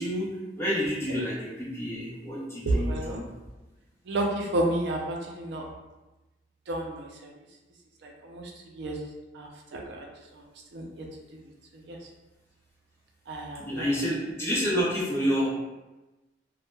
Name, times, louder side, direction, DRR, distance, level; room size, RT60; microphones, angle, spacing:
voice 1, 0.0-3.3 13.6-15.5, equal, 15° left, -7 dB, 0.7 m, -29 dB
voice 2, 2.7-3.2 4.1-5.6 6.7-7.1 8.0-8.5 8.8-9.0 9.3-10.1 10.7-11.0 11.9-12.0 13.3-13.8, right 1 dB, 65° right, 0 dB, 0.4 m, -30 dB
2.1 x 2.1 x 3.1 m, 1.1 s
head